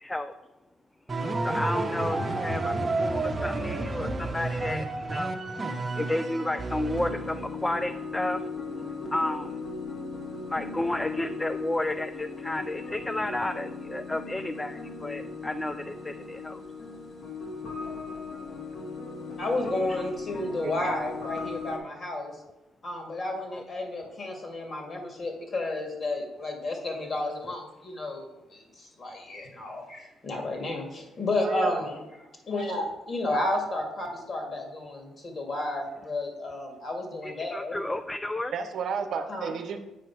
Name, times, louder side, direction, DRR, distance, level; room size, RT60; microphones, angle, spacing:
voice 1, 0.0-0.3 1.4-2.7 3.0-5.4 6.0-8.4 9.1-9.6 10.5-16.6 23.5-23.6 37.2-38.5, left 1 dB, 15° left, 9 dB, 0.3 m, -32 dB
sound 1, 1.1-7.6, right 2 dB, 30° right, 1.0 m, -30 dB
sound 2, 6.9-21.8, left 4 dB, 60° left, 1.6 m, -38 dB
voice 2, 19.4-22.4 22.8-32.0 32.5-38.0 39.3-39.5, left 2 dB, 45° left, 2 dB, 2.1 m, -32 dB
voice 3, 31.4-31.8 38.5-39.8, right 6 dB, 65° right, 7 dB, 0.8 m, -31 dB
7.8 x 5.0 x 4.6 m, 0.99 s
cardioid pair, 90°, 0 cm